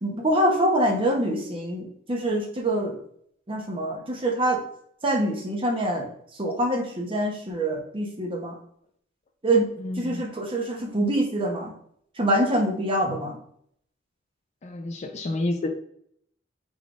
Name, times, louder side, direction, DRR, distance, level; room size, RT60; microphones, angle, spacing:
voice 1, 0.0-3.0 3.5-4.6 5.0-6.1 6.4-8.6 9.4-9.7 10.0-11.7 12.2-13.4, right 1 dB, 30° right, 0 dB, 0.8 m, -25 dB
voice 2, 9.8-10.2 14.6-15.7, left 2 dB, 35° left, 5 dB, 0.4 m, -30 dB
3.9 x 3.4 x 2.4 m, 0.67 s
head